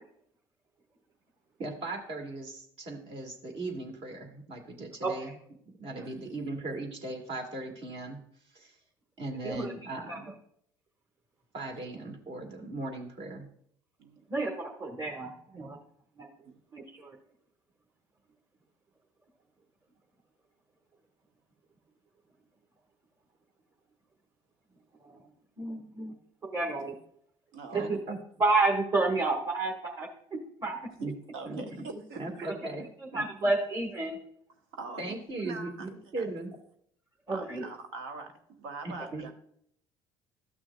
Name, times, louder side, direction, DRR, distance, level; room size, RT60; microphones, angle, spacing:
voice 1, 1.6-5.3 5.8-8.2 8.5-8.7 9.2-10.3 11.5-13.5 27.7-28.2 31.0-31.1 31.5-31.9 32.2-32.8 33.1-33.3 35.0-36.6 38.8-39.3, right 2 dB, 55° right, 3 dB, 2.0 m, -38 dB
voice 2, 5.0-5.3 9.4-10.2 14.3-15.8 16.2-16.3 16.7-17.2 25.0-25.3 25.6-26.1 26.5-26.9 27.7-28.0 28.4-30.1 30.6-30.9 33.0-34.2 37.3-37.7, right 3 dB, 25° right, -1 dB, 1.6 m, -30 dB
voice 3, 27.5-27.9 31.3-32.5 34.7-35.2 35.4-36.3 37.3-39.3, right 3 dB, 80° right, 5 dB, 1.2 m, -43 dB
13.0 x 6.2 x 2.3 m, 0.66 s
hypercardioid pair, 70°, 12 cm